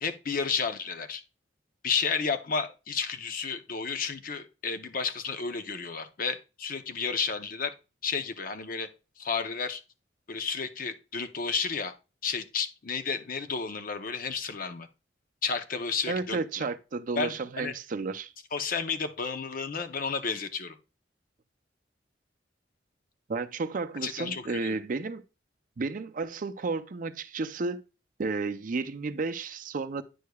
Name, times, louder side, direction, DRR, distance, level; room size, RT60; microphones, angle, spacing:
voice 1, 0.0-1.2 1.8-7.7 8.0-8.9 9.2-9.8 10.3-11.9 12.2-14.9 15.4-16.4 17.2-17.7 18.5-20.8 24.0-24.8, left 5 dB, 50° left, 0.6 m, -32 dB
voice 2, 16.1-18.3 23.3-25.2 25.8-27.8 28.2-30.0, right 3 dB, 50° right, 0.5 m, -32 dB
9.3 x 6.6 x 2.3 m
head